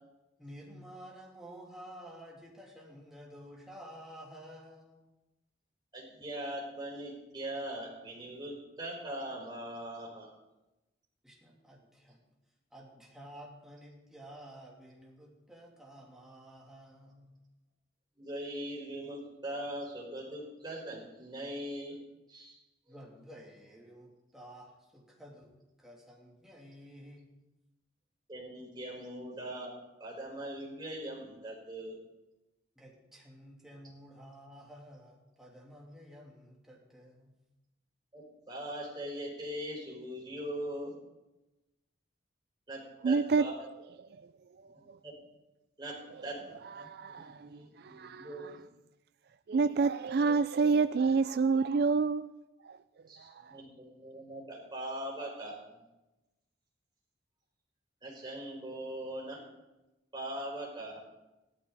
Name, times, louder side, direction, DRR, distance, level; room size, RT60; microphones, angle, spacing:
voice 1, 0.4-5.1 11.2-12.2 12.7-17.4 22.9-25.5 25.8-27.3 32.8-37.3, equal, 5° right, 2.8 m, -51 dB
voice 2, 5.9-10.3 18.2-22.0 22.3-22.5 22.9-23.0 28.3-29.7 30.0-32.0 38.1-40.9 42.7-43.5 44.7-45.1 45.8-45.9 46.2-48.6 53.1-55.9 58.0-59.4 60.1-61.0, right 1 dB, 25° right, 4.7 m, -41 dB
voice 3, 43.0-43.5 44.0-44.3 44.6-45.0 46.6-48.6 49.5-52.3 52.6-52.8 53.2-53.6, right 4 dB, 55° right, 0.4 m, -29 dB
17.0 x 13.0 x 4.0 m
head